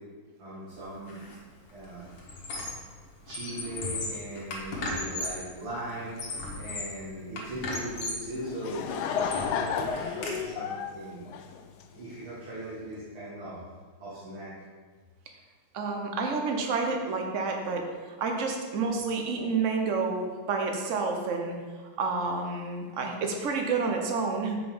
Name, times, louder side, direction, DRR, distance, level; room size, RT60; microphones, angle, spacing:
voice 1, 0.4-1.2 1.7-2.1 3.3-6.2 6.5-8.9 9.3-11.3 11.9-13.6 14.0-14.5, right 1 dB, 80° right, -10 dB, 2.9 m, -39 dB
Squeak, 1.1-1.4 1.7-2.9 3.2-5.5 6.0-7.0 7.4-8.3 8.8-10.4, left 2 dB, 65° left, 2.2 m, -36 dB
Laughter / Crowd, 8.3-12.1, left 7 dB, 85° left, 0.9 m, -32 dB
voice 2, 15.7-17.9 18.2-21.5 22.0-24.6, right 4 dB, 55° right, 3 dB, 0.9 m, -29 dB
6.8 x 5.0 x 5.5 m, 1.5 s
omnidirectional pair, 2.4 m